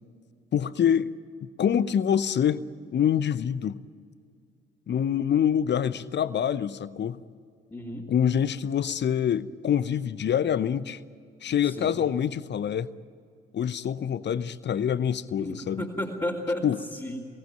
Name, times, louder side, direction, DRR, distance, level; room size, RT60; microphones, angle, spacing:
voice 1, 0.5-1.1 1.4-2.6 2.9-3.8 4.9-7.2 8.1-11.0 11.4-12.9 13.5-15.9 16.6-16.8, left 8 dB, 35° left, 17 dB, 0.9 m, -25 dB
voice 2, 7.7-8.1 11.5-12.0 15.4-16.7 16.9-17.3, left 1 dB, 15° left, -4 dB, 2.9 m, -33 dB
23.0 x 18.5 x 9.0 m, 2.3 s
figure-of-eight pair, 45°, 30 cm